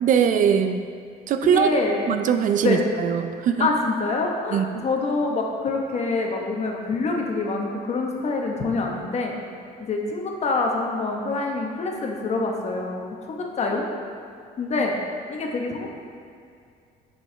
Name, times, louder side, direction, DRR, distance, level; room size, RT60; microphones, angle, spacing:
voice 1, 0.0-0.8 1.3-1.7 2.1-3.7 4.5-4.8, right 8 dB, 50° right, 8 dB, 0.4 m, -21 dB
voice 2, 1.4-2.1 2.6-2.8 3.6-9.3 9.8-13.0 13.3-13.9 14.6-15.0 15.3-15.9, left 3 dB, 40° left, 1 dB, 1.0 m, -26 dB
7.4 x 5.6 x 3.3 m, 2.3 s
cardioid pair, 110°, 17 cm